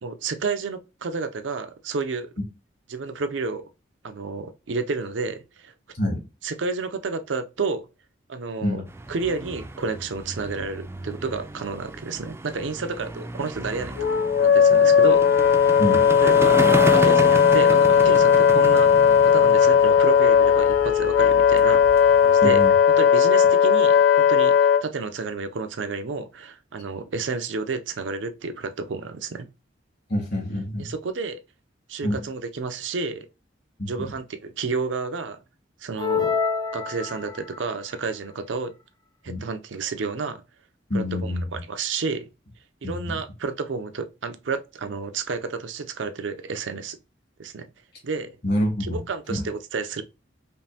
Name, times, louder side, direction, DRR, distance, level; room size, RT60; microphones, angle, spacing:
voice 1, 0.0-2.3 2.9-3.7 4.0-5.7 6.4-7.8 8.3-8.8 9.1-13.9 14.4-15.3 16.2-16.7 16.9-18.9 19.2-21.8 22.2-22.6 23.0-29.5 30.8-31.4 31.9-33.3 33.9-35.4 35.8-36.4 36.7-38.7 39.2-40.4 40.9-42.3 42.8-47.0 47.4-47.7 48.0-48.3 48.8-50.0, right 4 dB, 85° right, 0.5 m, -30 dB
sound 1, 8.9-22.7, right 2 dB, 15° right, 0.3 m, -32 dB
Wind instrument woodwind instrument, 14.0-24.8, left 7 dB, 75° left, 0.4 m, -17 dB
voice 2, 22.4-22.7 30.1-30.9 32.0-32.2 33.8-34.1 39.3-39.4 40.9-41.4 42.8-43.2 48.4-49.0 49.3-49.4, left 1 dB, 60° left, 1.9 m, -26 dB
sound 2, 36.0-37.6, left 6 dB, 25° left, 0.7 m, -26 dB
5.2 x 2.5 x 2.8 m
head